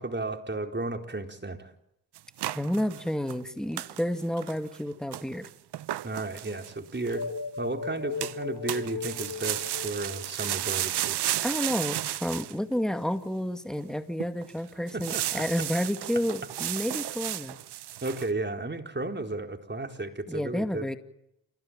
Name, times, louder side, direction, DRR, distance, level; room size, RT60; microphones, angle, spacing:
voice 1, 0.0-1.7 6.0-7.3 7.6-11.2 14.9-15.4 18.0-20.9, right 2 dB, 25° right, 5 dB, 4.3 m, -33 dB
sound 1, 2.1-3.4 3.8-4.0 4.4-4.8 5.1-7.2 8.2-8.4 8.7-12.5 13.1-13.2 13.8-13.9 14.2-14.5 14.9-18.3, right 13 dB, 60° right, 0.9 m, -33 dB
voice 2, 2.5-5.5 11.4-17.6 20.3-21.0, equal, ahead, 9 dB, 2.3 m, -30 dB
sound 2, 7.1-11.1, left 5 dB, 45° left, 3.0 m, -37 dB
28.5 x 16.5 x 9.1 m, 0.78 s
supercardioid pair, 55°, 45 cm